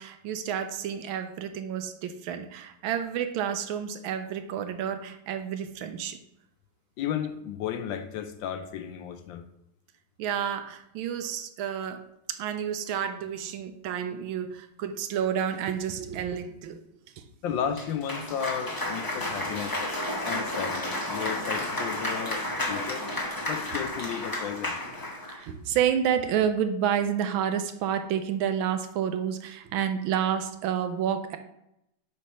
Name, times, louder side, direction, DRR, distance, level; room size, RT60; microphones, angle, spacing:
voice 1, 0.0-6.2 10.2-12.0 12.3-16.8 17.2-17.3 25.3-31.4, right 9 dB, 80° right, 9 dB, 1.4 m, -29 dB
voice 2, 7.0-9.4 17.4-19.8 20.2-23.1 23.5-24.8, left 8 dB, 75° left, 9 dB, 1.2 m, -33 dB
Cheering / Applause, 17.7-25.4, left 1 dB, 30° left, 0.3 m, -32 dB
7.2 x 3.3 x 5.4 m, 0.81 s
omnidirectional pair, 2.3 m